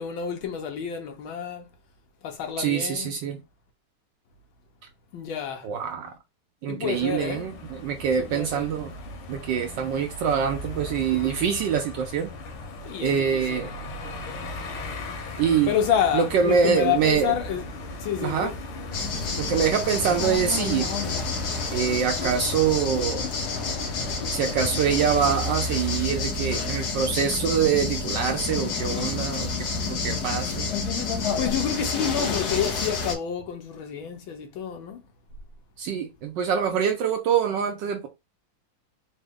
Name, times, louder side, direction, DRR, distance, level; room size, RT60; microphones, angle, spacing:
voice 1, 0.0-1.7 2.2-3.1 5.1-5.7 6.7-7.5 8.2-8.7 12.9-13.7 15.7-18.5 31.4-35.0, left 8 dB, 75° left, 1.5 m, -29 dB
voice 2, 2.6-3.4 5.6-6.1 6.6-8.9 9.3-12.3 13.0-13.7 15.4-15.8 16.1-17.3 18.2-18.5 19.4-20.9 21.7-23.2 24.3-29.5 30.0-30.7 35.8-38.1, right 7 dB, 70° right, 1.1 m, -25 dB
sound 1, 6.9-26.0, left 3 dB, 90° left, 1.7 m, -38 dB
sound 2, 18.9-33.1, left 4 dB, 55° left, 1.3 m, -29 dB
4.0 x 2.2 x 3.5 m
omnidirectional pair, 2.3 m